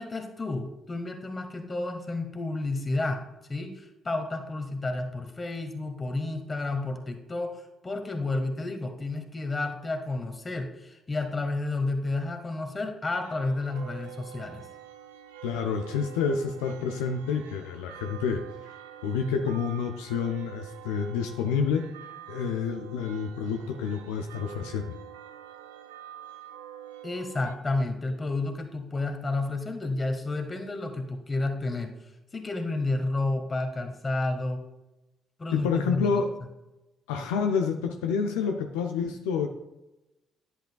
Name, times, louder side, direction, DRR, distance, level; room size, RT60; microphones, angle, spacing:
voice 1, 0.0-3.2 3.5-7.5 7.8-14.7 27.0-31.9 32.3-34.6 35.4-36.1, left 2 dB, 30° left, 5 dB, 1.4 m, -31 dB
sound 1, 13.2-27.5, right 11 dB, 90° right, 0.4 m, -46 dB
voice 2, 15.4-18.7 19.0-21.9 22.3-24.9 35.5-36.4 37.1-39.5, left 6 dB, 80° left, 4 dB, 0.5 m, -28 dB
10.5 x 7.8 x 2.3 m, 0.99 s
hypercardioid pair, 50°, 0 cm